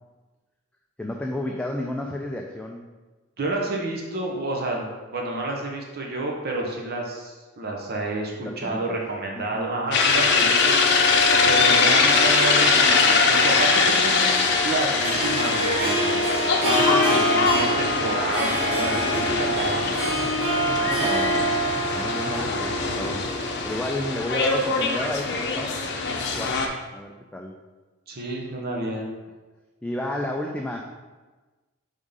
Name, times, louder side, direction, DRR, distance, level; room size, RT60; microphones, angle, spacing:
voice 1, 1.0-2.8 8.3-9.0 9.4-9.7 20.2-21.5 21.9-23.3 23.6-25.8 26.1-26.6 26.9-27.5 29.8-30.8, left 1 dB, 5° left, 1 dB, 0.4 m, -32 dB
voice 2, 3.4-10.7 11.1-19.9 28.1-29.1, right 2 dB, 50° right, 0 dB, 0.8 m, -30 dB
sound 1, 9.9-26.7, left 4 dB, 55° left, 0.7 m, -22 dB
Harp, 13.6-24.0, right 1 dB, 25° right, 1.1 m, -26 dB
5.1 x 3.6 x 5.5 m, 1.2 s
head